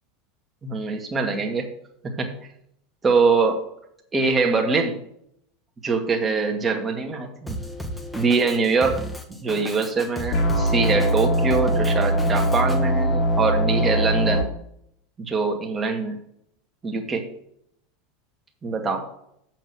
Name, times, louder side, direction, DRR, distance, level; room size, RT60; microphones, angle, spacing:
voice 1, 0.6-1.7 2.0-2.5 3.0-3.5 4.1-5.0 5.8-7.6 8.1-9.0 9.4-14.4 15.2-16.2 16.8-17.3 18.6-19.1, right 4 dB, 20° right, 2 dB, 1.6 m, -23 dB
Drum kit, 7.5-12.8, equal, 10° left, 1.2 m, -35 dB
sound 1, 10.3-14.4, equal, 40° left, 1.8 m, -21 dB
7.9 x 6.0 x 6.1 m, 0.73 s
figure-of-eight pair, 80°, 0 cm